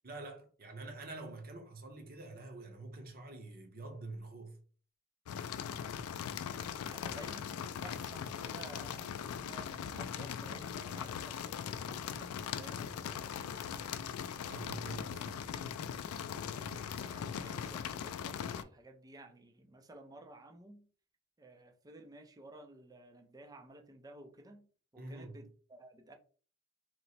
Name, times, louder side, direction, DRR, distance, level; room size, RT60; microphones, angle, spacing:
voice 1, 0.0-4.6 11.9-12.0 14.4-15.8 16.5-17.1 25.0-25.4, right 2 dB, 45° right, 0.8 m, -47 dB
sound 1, 5.3-18.6, left 8 dB, 85° left, 0.3 m, -40 dB
voice 2, 6.9-14.0 17.0-20.9 21.4-24.7 24.9-26.1, right 2 dB, 15° right, 0.4 m, -54 dB
3.0 x 2.1 x 4.1 m
head